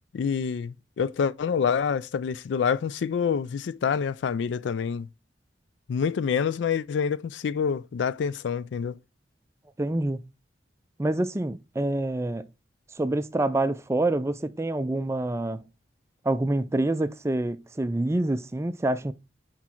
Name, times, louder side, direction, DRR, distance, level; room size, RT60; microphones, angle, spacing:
voice 1, 0.1-5.1 5.9-9.0, left 6 dB, 75° left, 0.3 m, -27 dB
voice 2, 9.8-10.3 11.0-12.5 13.0-15.6 16.2-19.1, right 2 dB, 15° right, 0.3 m, -27 dB
6.1 x 4.7 x 4.4 m
head